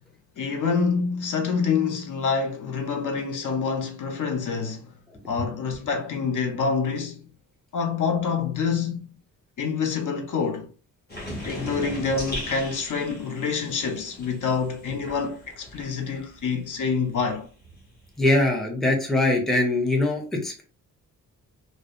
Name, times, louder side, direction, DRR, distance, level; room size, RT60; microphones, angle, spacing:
voice 1, 0.4-4.9 5.3-7.2 7.7-9.1 9.6-10.7 11.4-17.5, left 5 dB, 60° left, 0.6 m, -27 dB
sound 1, 11.1-16.5 16.8-18.5, equal, 25° left, 1.1 m, -38 dB
voice 2, 18.2-20.6, left 2 dB, ahead, 0.5 m, -22 dB
2.6 x 2.0 x 2.4 m
wide cardioid pair, 125°, 35 cm